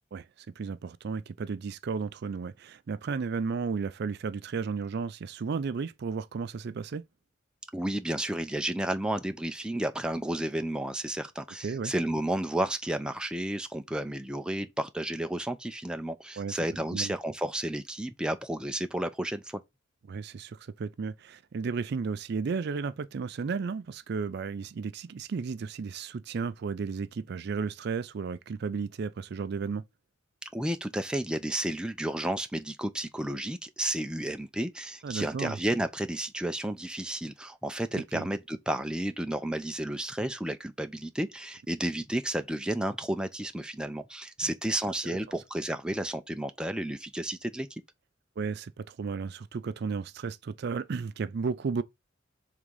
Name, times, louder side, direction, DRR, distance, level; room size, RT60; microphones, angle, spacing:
voice 1, 0.6-7.0 11.6-11.9 16.4-16.6 16.9-17.1 20.1-29.8 35.0-35.6 37.9-38.3 45.0-45.2 48.4-51.8, right 5 dB, 55° right, 0.4 m, -33 dB
voice 2, 7.7-19.6 30.5-47.7, right 1 dB, 5° right, 0.5 m, -32 dB
4.8 x 3.7 x 5.3 m
head